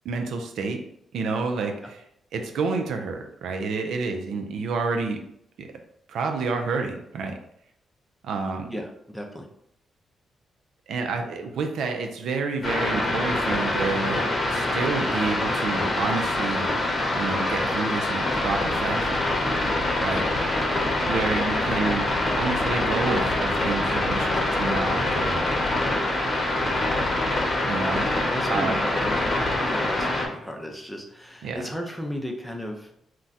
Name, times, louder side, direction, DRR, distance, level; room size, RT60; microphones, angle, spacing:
voice 1, 0.0-0.8 1.1-2.0 2.3-5.2 5.6-5.7 6.1-7.4 8.2-8.7 10.9-16.7 17.1-19.2 20.0-20.2 21.1-22.1 22.4-25.4 27.7-28.1 28.5-28.8 31.4-31.6, right 4 dB, 80° right, 4 dB, 0.4 m, -29 dB
voice 2, 8.7-9.5 27.9-32.9, equal, 5° left, 2 dB, 0.6 m, -35 dB
sound 1, 12.6-30.3, left 2 dB, 40° left, 0.8 m, -25 dB
2.4 x 2.2 x 4.0 m, 0.74 s
cardioid pair, 75°, 0 cm